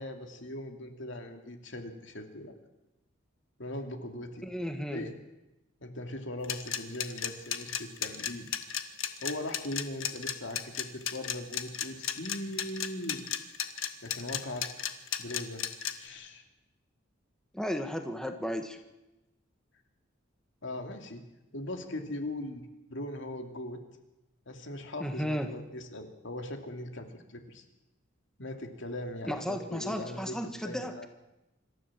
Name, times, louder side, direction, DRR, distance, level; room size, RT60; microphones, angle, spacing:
voice 1, 0.0-2.6 3.6-4.5 4.9-5.1 5.8-8.5 9.2-13.3 14.0-14.6 15.2-15.7 16.0-16.4 20.6-21.2 21.5-22.6 22.9-23.8 24.5-27.6 28.4-31.1, left 1 dB, 65° left, 5 dB, 2.7 m, -40 dB
voice 2, 4.4-5.0 17.5-18.8 25.0-25.5 29.3-31.1, equal, 5° left, 6 dB, 1.4 m, -34 dB
sound 1, 6.4-15.9, left 10 dB, 85° left, 1.6 m, -33 dB
26.0 x 14.0 x 7.5 m, 0.98 s
head